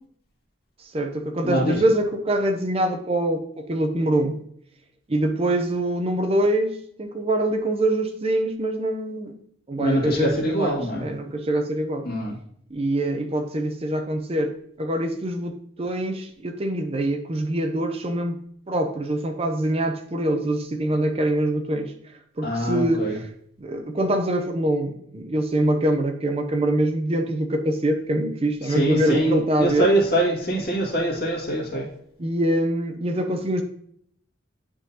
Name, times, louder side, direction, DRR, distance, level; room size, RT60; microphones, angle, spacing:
voice 1, 0.8-4.4 5.1-9.3 9.7-12.1 12.7-14.5 14.8-18.4 18.7-23.3 23.6-29.9 32.2-33.6, right 1 dB, 30° right, 5 dB, 0.5 m, -24 dB
voice 2, 1.4-1.8 9.8-11.1 12.0-12.3 22.4-23.2 28.6-31.9, right 1 dB, 50° left, -3 dB, 2.0 m, -24 dB
9.9 x 3.7 x 2.8 m, 0.66 s
head